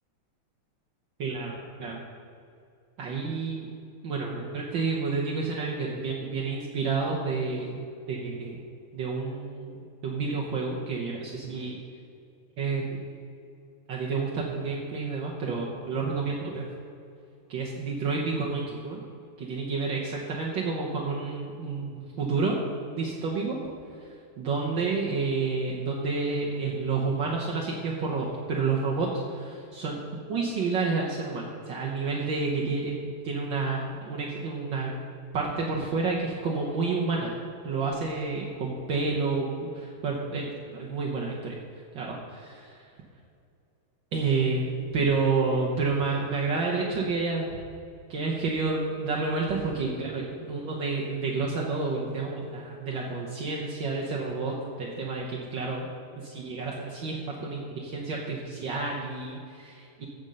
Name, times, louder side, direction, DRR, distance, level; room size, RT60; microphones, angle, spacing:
voice 1, 1.2-2.0 3.0-3.7 4.0-7.8 8.1-8.6 8.9-11.8 12.6-13.0 13.9-16.6 17.5-19.0 19.4-22.6 23.0-23.6 24.4-30.0 30.3-33.0 33.2-34.9 35.3-37.3 37.6-39.5 39.7-41.5 41.9-42.8 44.1-44.7 44.9-47.6 48.1-55.9 56.2-60.1, right 4 dB, 65° right, -3 dB, 1.6 m, -29 dB
15.0 x 5.3 x 5.4 m, 2.5 s
omnidirectional pair, 2.4 m